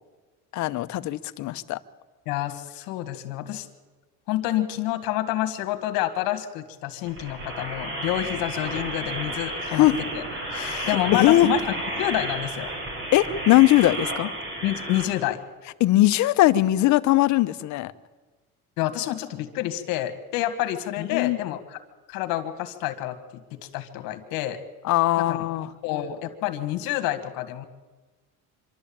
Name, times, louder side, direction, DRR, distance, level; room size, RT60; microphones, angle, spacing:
voice 1, 0.5-1.8 9.6-10.0 10.5-11.5 13.1-14.3 15.8-17.9 21.0-21.4 24.8-25.7, left 15 dB, 55° left, 12 dB, 0.9 m, -20 dB
voice 2, 2.3-3.7 4.3-9.9 10.1-10.2 10.9-12.7 14.6-15.4 18.8-21.8 22.1-23.2 23.5-24.6 25.3-25.4 25.8-27.7, left 14 dB, 80° left, 8 dB, 2.0 m, -28 dB
sound 1, 7.1-15.0, right 1 dB, 35° right, 5.8 m, -32 dB
25.5 x 12.5 x 8.8 m, 1.3 s
cardioid pair, 135°, 34 cm